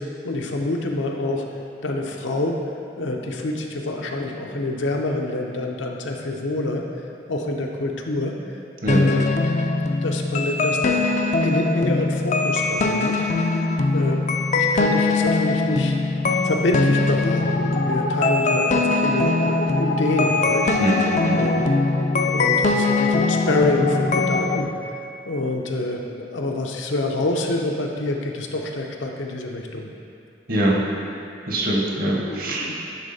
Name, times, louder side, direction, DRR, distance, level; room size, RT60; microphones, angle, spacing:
voice 1, 0.0-1.4 1.8-2.6 3.0-6.9 7.3-8.4 8.9-9.2 10.0-11.0 11.4-14.2 14.5-20.7 21.3-21.7 22.2-24.7 25.3-29.9 32.2-32.7, left 2 dB, 75° left, 1 dB, 0.7 m, -26 dB
sound 1, 8.9-24.6, left 3 dB, 40° left, 0.4 m, -21 dB
voice 2, 20.8-21.5 30.5-30.8 31.5-32.7, right 1 dB, 50° right, -2 dB, 1.0 m, -23 dB
9.9 x 3.5 x 4.1 m, 2.7 s
head